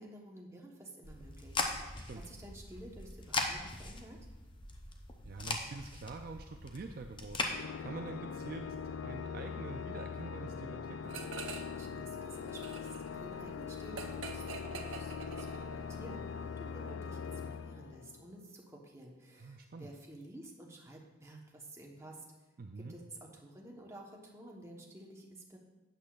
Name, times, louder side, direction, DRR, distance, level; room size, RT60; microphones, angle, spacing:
voice 1, 0.0-4.2 11.7-22.2 22.8-25.6, right 1 dB, 15° right, -1 dB, 1.1 m, -52 dB
sound 1, 1.0-7.5, left 3 dB, 25° left, 0.7 m, -40 dB
voice 2, 5.2-8.7 9.0-11.2 19.4-19.9 22.6-22.9, right 3 dB, 50° right, 4 dB, 0.4 m, -46 dB
Organ, 7.5-18.4, left 6 dB, 75° left, 0.3 m, -42 dB
sound 2, 11.1-11.8 12.1-16.0, right 4 dB, 75° right, 0.8 m, -46 dB
12.0 x 8.5 x 2.4 m, 1.1 s
head